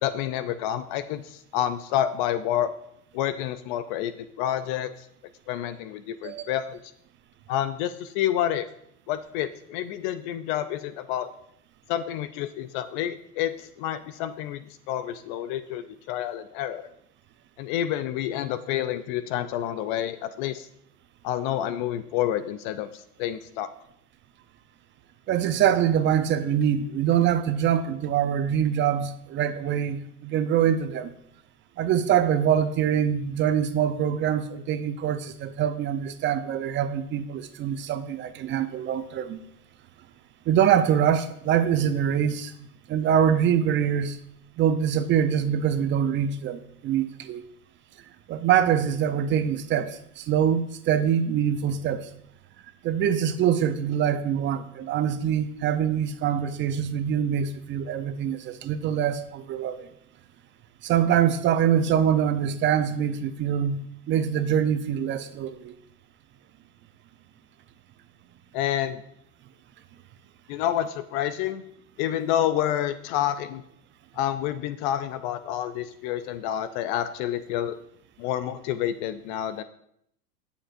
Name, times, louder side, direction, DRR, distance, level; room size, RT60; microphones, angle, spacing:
voice 1, 0.0-2.7 3.1-5.1 5.5-6.8 7.5-8.7 9.1-11.3 11.9-16.9 17.6-20.7 21.2-23.7 68.5-69.0 70.5-71.6 72.0-73.6 74.1-77.8 78.2-79.6, left 11 dB, 35° left, 12 dB, 0.4 m, -29 dB
voice 2, 6.2-6.5 25.3-31.1 31.8-39.4 40.5-42.5 42.9-44.2 44.6-47.4 48.3-52.1 52.8-59.9 60.8-65.7, right 9 dB, 25° right, 11 dB, 0.6 m, -24 dB
17.0 x 7.1 x 2.5 m, 0.73 s
hypercardioid pair, 105°, 46 cm